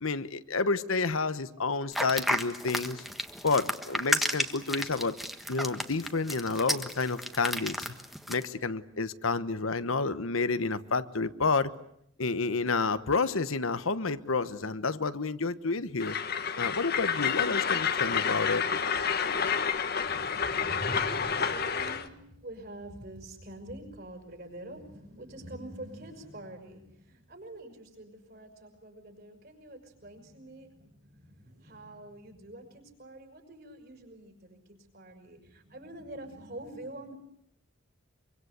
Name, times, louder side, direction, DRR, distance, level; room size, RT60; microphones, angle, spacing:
voice 1, 0.0-3.0 3.4-5.2 5.5-7.9 8.3-11.7 12.2-16.2 16.6-18.6, left 4 dB, 80° left, 13 dB, 1.1 m, -29 dB
sound 1, 1.9-8.4, equal, ahead, 1.4 m, -32 dB
Train, 16.0-22.1, left 6 dB, 50° left, 1.3 m, -29 dB
voice 2, 20.0-37.1, right 1 dB, 50° right, 4 dB, 6.1 m, -45 dB
25.0 x 24.5 x 8.2 m, 0.73 s
head